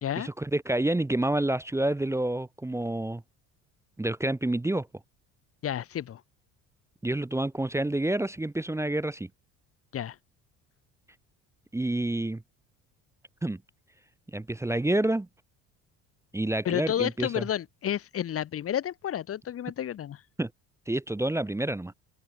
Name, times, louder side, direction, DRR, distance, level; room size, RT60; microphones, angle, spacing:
voice 1, 0.2-3.2 4.0-4.9 7.0-9.3 11.7-12.4 13.4-13.6 14.3-15.3 16.3-17.4 20.4-20.5 20.9-21.9, right 1 dB, 5° right, 0.7 m, -28 dB
voice 2, 5.6-6.2 9.9-10.2 16.6-20.2, left 10 dB, 40° left, 0.8 m, -31 dB
supercardioid pair, 75°, 37 cm